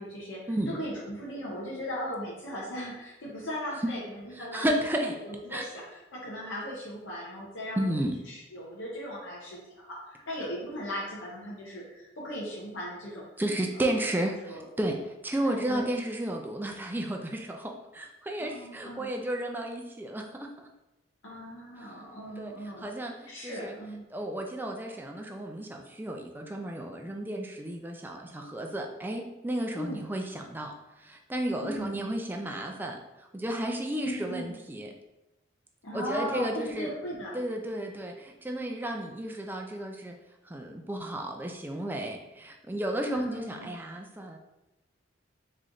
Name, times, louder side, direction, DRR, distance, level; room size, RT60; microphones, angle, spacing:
voice 1, 0.0-0.4 0.7-4.7 5.2-7.9 8.3-13.2 13.7-14.1 14.5-14.6 15.4-15.9 18.4-19.1 21.2-22.9 23.3-24.0 29.7-30.0 31.6-31.9 34.0-34.5 35.8-37.4 43.0-43.7, equal, 75° left, -6 dB, 1.0 m, -38 dB
voice 2, 4.3-5.2 5.5-5.7 7.8-8.1 13.4-20.7 21.8-21.9 22.4-23.8 24.1-34.9 35.9-36.9 37.3-40.2 40.4-44.4, right 1 dB, 10° right, 2 dB, 0.4 m, -33 dB
3.9 x 3.2 x 3.8 m, 1.0 s
head